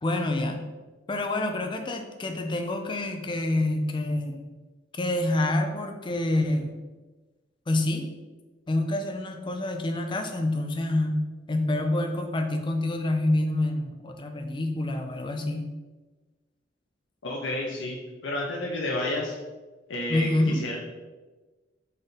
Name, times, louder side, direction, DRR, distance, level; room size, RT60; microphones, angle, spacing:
voice 1, 0.0-0.6 1.1-4.5 5.0-6.8 7.7-8.0 8.7-15.7 20.1-20.8, left 1 dB, 25° left, 5 dB, 0.4 m, -27 dB
voice 2, 17.2-18.0 18.2-19.3 19.9-20.8, left 2 dB, 75° left, -1 dB, 0.7 m, -30 dB
4.1 x 3.3 x 4.0 m, 1.2 s
head